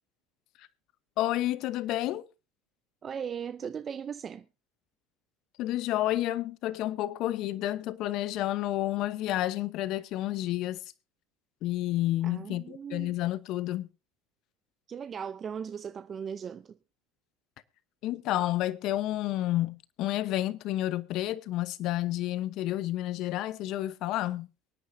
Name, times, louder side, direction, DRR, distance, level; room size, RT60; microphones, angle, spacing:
voice 1, 1.2-2.3 5.6-10.8 11.6-13.9 18.0-24.5, left 14 dB, 60° left, 0.9 m, -30 dB
voice 2, 3.0-4.5 12.2-13.1 14.9-16.8, right 7 dB, 35° right, 0.5 m, -38 dB
23.5 x 9.5 x 2.7 m
supercardioid pair, 105°, 0 cm